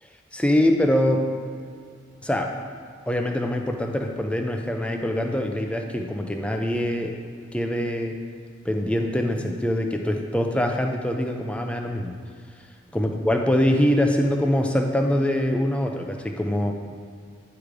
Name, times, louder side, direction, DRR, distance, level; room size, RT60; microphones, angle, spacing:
voice 1, 0.3-1.3 2.2-2.5 3.1-7.2 7.5-8.2 8.6-12.2 12.9-16.7, left 1 dB, 5° left, 3 dB, 0.5 m, -24 dB
10.5 x 4.9 x 5.1 m, 2.2 s
head